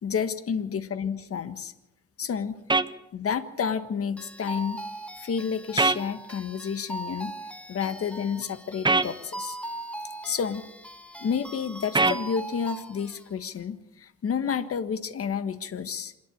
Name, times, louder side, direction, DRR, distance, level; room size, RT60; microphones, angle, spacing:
voice 1, 0.0-1.7 2.2-2.6 3.1-4.8 5.2-7.3 7.7-9.6 10.2-10.6 11.2-16.1, left 7 dB, 50° left, 11 dB, 1.6 m, -30 dB
sound 1, 2.7-2.9 5.8-6.0 8.8-9.1 11.9-12.2, right 3 dB, 15° right, 0.9 m, -21 dB
sound 2, 4.2-13.2, right 1 dB, 5° left, 1.7 m, -40 dB
27.0 x 11.5 x 8.6 m, 0.89 s
cardioid pair, 90°, 30 cm